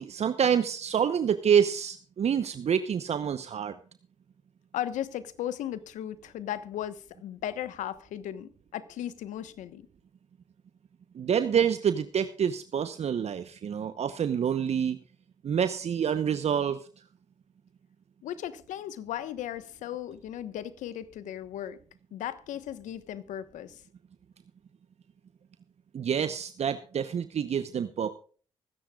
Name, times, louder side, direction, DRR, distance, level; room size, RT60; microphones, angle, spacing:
voice 1, 0.0-3.7 11.1-15.0 15.4-16.8 25.9-28.1, right 8 dB, 60° right, 0.9 m, -27 dB
voice 2, 4.7-9.9 18.2-21.8 22.1-23.8, left 11 dB, 80° left, 1.2 m, -36 dB
24.5 x 10.0 x 2.4 m
supercardioid pair, 55°, 13 cm